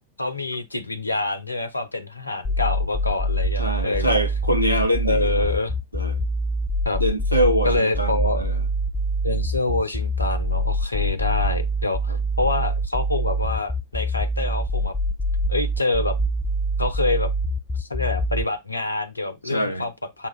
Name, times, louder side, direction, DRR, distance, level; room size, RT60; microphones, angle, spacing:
voice 1, 0.2-4.2 5.0-5.8 6.9-7.0 7.6-8.4 9.2-14.9 15.5-16.2 16.8-17.3 17.8-20.3, left 2 dB, 80° left, 0.6 m, -26 dB
sound 1, 2.4-18.4, right 1 dB, 15° left, 0.5 m, -24 dB
voice 2, 3.6-5.5 5.9-6.2 7.0-8.6 12.1-12.2 19.4-19.9, equal, 90° right, 0.7 m, -24 dB
6.9 x 2.3 x 3.1 m
figure-of-eight pair, 90°, 0 cm